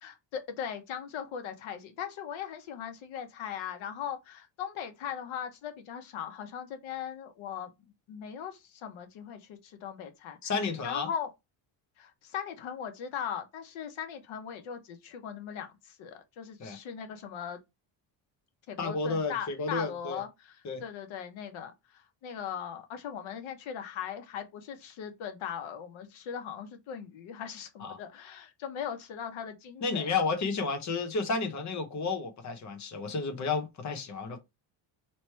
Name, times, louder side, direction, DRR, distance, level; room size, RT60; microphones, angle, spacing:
voice 1, 0.0-7.7 8.1-10.4 10.8-11.3 12.0-17.6 18.7-30.1, left 8 dB, 90° left, 1.1 m, -39 dB
voice 2, 10.4-11.1 16.6-16.8 18.8-20.2 20.6-20.8 27.8-28.0 29.8-34.4, left 4 dB, 40° left, 0.9 m, -32 dB
3.2 x 3.0 x 4.5 m
cardioid pair, 170°, 46 cm